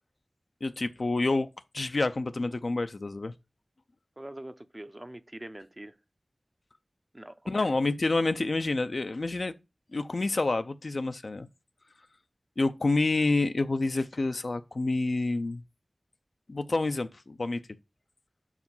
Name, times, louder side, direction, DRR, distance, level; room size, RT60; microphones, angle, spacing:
voice 1, 0.6-1.5 1.7-3.3 7.5-9.5 9.9-11.5 12.6-15.6 16.5-17.6, left 2 dB, 75° left, 0.5 m, -28 dB
voice 2, 4.2-6.0 7.1-7.7, right 1 dB, 30° right, 0.6 m, -44 dB
5.2 x 4.9 x 5.4 m
wide cardioid pair, 45°, 0 cm